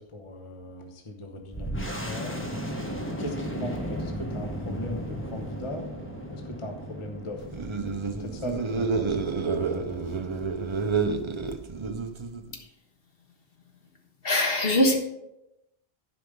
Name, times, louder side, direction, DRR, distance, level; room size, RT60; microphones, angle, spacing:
voice 1, 0.0-2.4 3.2-5.9 6.3-7.4 8.2-10.3, left 1 dB, 30° left, 3 dB, 1.0 m, -38 dB
sound 1, 1.5-10.7, equal, 10° left, 1.3 m, -36 dB
sound 2, 7.4-12.5, right 4 dB, 35° right, 0.6 m, -29 dB
voice 2, 14.2-15.0, left 1 dB, 60° left, 2 dB, 1.6 m, -22 dB
11.5 x 5.1 x 5.1 m, 0.90 s
omnidirectional pair, 1.1 m